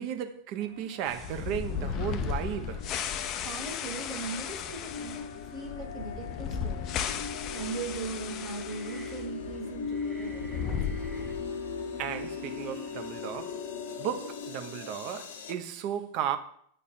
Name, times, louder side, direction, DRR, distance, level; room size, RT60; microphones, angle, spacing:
voice 1, 0.0-2.9 12.0-13.6 14.0-16.4, right 9 dB, 50° right, 0.8 m, -34 dB
sound 1, 0.6-15.5, left 5 dB, 75° left, 1.0 m, -40 dB
sound 2, 1.1-9.3 9.5-9.6 10.2-11.6, left 7 dB, 40° left, 0.5 m, -35 dB
voice 2, 3.4-7.1 7.5-11.1, right 4 dB, 30° right, 1.5 m, -39 dB
sound 3, 7.5-12.8, right 3 dB, 10° right, 0.6 m, -51 dB
8.5 x 3.3 x 4.2 m
hypercardioid pair, 105°, 0 cm